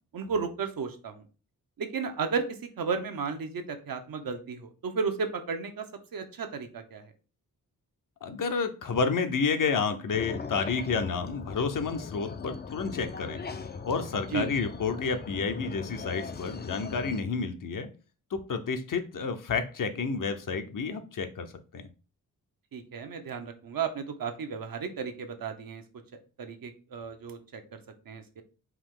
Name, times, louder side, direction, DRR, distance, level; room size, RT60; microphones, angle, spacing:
voice 1, 0.1-1.2 1.8-5.9 6.1-7.0 14.3-14.5 22.7-25.8 26.4-27.8 28.1-28.4, right 5 dB, 70° right, 6 dB, 0.8 m, -33 dB
voice 2, 8.2-13.4 13.8-17.9 18.3-21.9, left 5 dB, 65° left, 8 dB, 0.7 m, -30 dB
sound 1, 10.1-17.2, left 5 dB, 30° left, 0.4 m, -39 dB
4.8 x 2.8 x 3.7 m, 0.35 s
wide cardioid pair, 135°, 35 cm